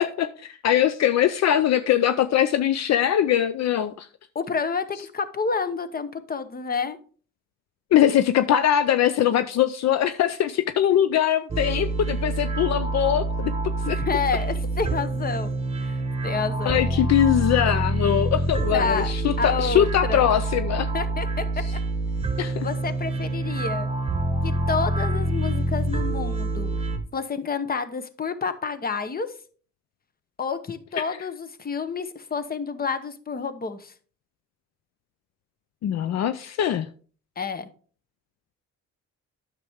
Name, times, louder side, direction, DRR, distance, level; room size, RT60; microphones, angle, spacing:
voice 1, 0.0-4.1 7.9-13.5 13.9-14.0 16.7-20.9 22.4-22.7 31.0-31.1 35.8-36.8, left 10 dB, 60° left, 0.5 m, -22 dB
voice 2, 4.3-7.0 13.8-15.5 15.8-16.8 18.7-19.1 19.4-20.2 20.9-21.6 22.6-23.9 24.4-26.7 27.1-29.3 30.4-33.9 37.4-37.7, left 5 dB, 30° left, 1.0 m, -29 dB
sound 1, 11.5-27.0, right 2 dB, 20° right, 1.3 m, -26 dB
9.6 x 6.7 x 3.5 m
cardioid pair, 90°, 30 cm